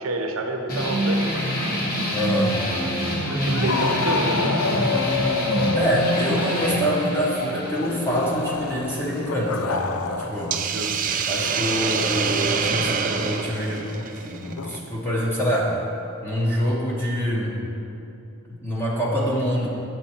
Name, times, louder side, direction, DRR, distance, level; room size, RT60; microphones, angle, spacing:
voice 1, 0.0-1.4 3.2-5.0 10.7-10.9, right 2 dB, 70° right, 3 dB, 0.9 m, -28 dB
sound 1, 0.7-9.7, equal, 45° left, 1.7 m, -26 dB
voice 2, 2.1-2.6 5.7-9.9 10.2-10.6 11.3-15.7 16.2-17.6 18.5-19.7, equal, 10° left, -5 dB, 1.0 m, -25 dB
sound 2, 3.2-10.6 10.9-14.8, left 4 dB, 85° left, 0.5 m, -30 dB
Hiss, 10.5-14.8, right 6 dB, 40° right, 0.4 m, -26 dB
7.8 x 7.6 x 4.4 m, 2.8 s
head